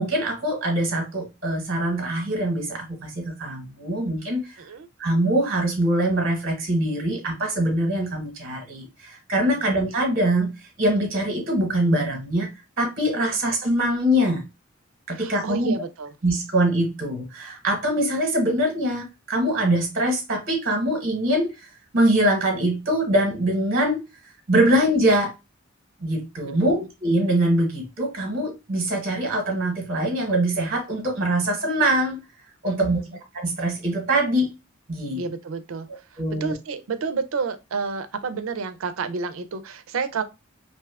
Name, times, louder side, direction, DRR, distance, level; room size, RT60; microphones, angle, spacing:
voice 1, 0.0-4.5 5.0-10.5 10.8-12.5 12.8-14.4 15.1-15.7 16.2-21.5 21.9-24.0 24.5-25.3 26.0-32.2 32.6-33.0 33.3-34.5 34.9-35.3 36.2-36.5, right 1 dB, 40° right, 1.0 m, -23 dB
voice 2, 15.1-16.1 26.4-26.7 32.6-33.1 35.1-35.9 36.4-40.2, right 5 dB, 75° right, 0.4 m, -30 dB
2.6 x 2.3 x 3.3 m
head